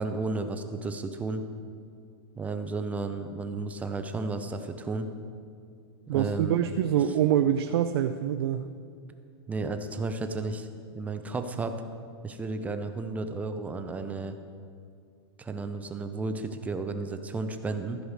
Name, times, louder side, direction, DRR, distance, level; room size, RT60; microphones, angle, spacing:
voice 1, 0.0-1.4 2.4-5.1 6.1-6.5 9.5-10.7 10.9-11.7 12.2-14.3 15.4-18.0, right 3 dB, 10° right, 8 dB, 0.5 m, -33 dB
voice 2, 6.1-8.6, right 10 dB, 70° right, 8 dB, 0.5 m, -25 dB
14.5 x 4.9 x 6.4 m, 2.3 s
supercardioid pair, 150°, 14 cm